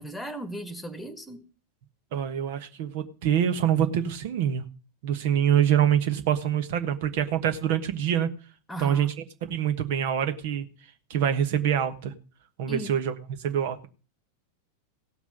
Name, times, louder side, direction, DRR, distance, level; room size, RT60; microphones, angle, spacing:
voice 1, 0.0-1.4 8.7-9.1 12.7-13.0, right 1 dB, 5° left, 1.7 m, -37 dB
voice 2, 2.1-4.6 5.0-8.3 8.8-9.1 9.5-10.7 11.1-12.1 12.6-13.1 13.4-13.9, right 9 dB, 50° right, 1.3 m, -25 dB
16.5 x 6.0 x 6.6 m
figure-of-eight pair, 90°, 0 cm